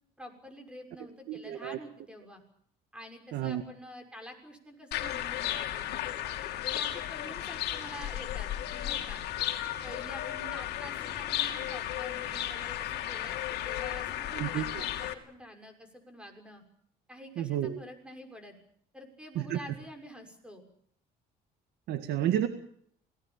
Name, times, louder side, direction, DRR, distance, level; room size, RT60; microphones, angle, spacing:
voice 1, 0.2-2.4 2.9-6.3 6.6-9.2 9.8-16.6 17.1-18.6 18.9-20.6, equal, 5° right, 6 dB, 6.4 m, -48 dB
voice 2, 1.3-1.8 3.3-3.6 14.3-14.6 17.4-17.8 19.4-19.6 21.9-22.5, right 11 dB, 80° right, 7 dB, 1.9 m, -30 dB
sound 1, 4.9-15.1, left 12 dB, 75° left, 2.9 m, -34 dB
27.0 x 19.0 x 7.4 m, 0.65 s
cardioid pair, 110°, 17 cm